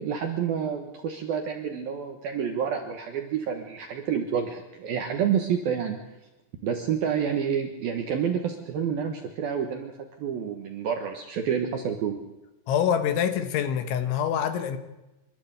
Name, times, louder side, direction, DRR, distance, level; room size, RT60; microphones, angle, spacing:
voice 1, 0.0-6.0 6.6-12.2, right 7 dB, 70° right, 4 dB, 2.4 m, -29 dB
voice 2, 12.7-14.8, left 8 dB, 70° left, 9 dB, 3.4 m, -25 dB
27.0 x 12.5 x 8.3 m, 1.0 s
omnidirectional pair, 6.0 m